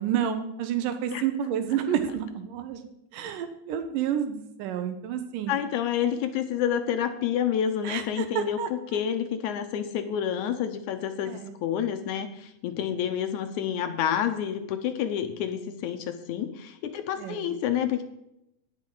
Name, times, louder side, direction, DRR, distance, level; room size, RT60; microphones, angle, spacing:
voice 1, 0.0-5.5 7.8-8.7 11.3-11.5 17.2-17.5, right 9 dB, 85° right, 8 dB, 2.4 m, -30 dB
voice 2, 5.5-18.0, left 9 dB, 75° left, 9 dB, 1.9 m, -29 dB
17.5 x 6.1 x 3.8 m, 0.83 s
omnidirectional pair, 3.7 m